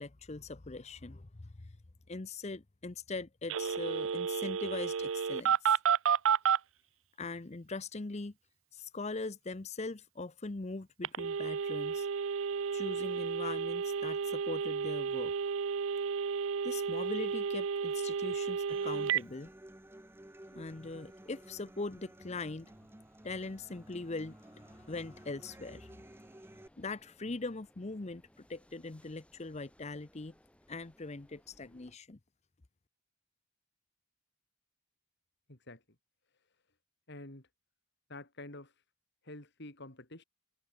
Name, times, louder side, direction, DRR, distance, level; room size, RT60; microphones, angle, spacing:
voice 1, 0.0-1.7 2.1-5.8 7.2-8.3 8.7-12.1 12.7-15.3 16.6-19.5 20.5-22.7 23.2-25.9 26.8-30.3 30.7-32.2, left 3 dB, 30° left, 0.7 m, -41 dB
Telephone, 3.5-6.6 11.0-19.2, right 7 dB, 65° right, 0.5 m, -32 dB
sound 1, 12.5-32.0, equal, 5° left, 5.4 m, -68 dB
Human voice / Acoustic guitar, 18.7-26.7, right 1 dB, 10° right, 0.7 m, -54 dB
voice 2, 35.5-35.8 37.1-37.5 38.1-38.8 39.2-40.2, left 2 dB, 50° left, 3.3 m, -48 dB
head